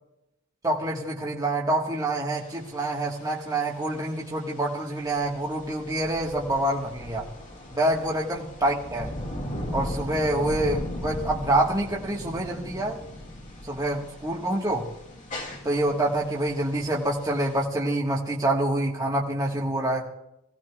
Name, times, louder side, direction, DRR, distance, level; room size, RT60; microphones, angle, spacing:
voice 1, 0.6-7.3 7.7-9.1 9.7-13.0 13.6-14.9 15.6-20.1, right 1 dB, 15° right, -3 dB, 1.5 m, -26 dB
sound 1, 2.4-17.7, left 1 dB, 35° left, 2.1 m, -38 dB
24.5 x 17.5 x 2.4 m, 0.86 s
head